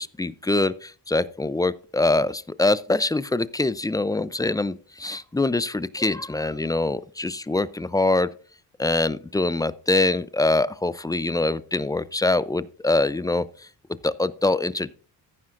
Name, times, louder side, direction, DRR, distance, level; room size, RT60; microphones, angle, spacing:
voice 1, 0.0-8.3 8.8-13.5 14.0-14.9, left 2 dB, 10° left, 0.5 m, -24 dB
14.5 x 9.4 x 2.6 m
cardioid pair, 80°, 42 cm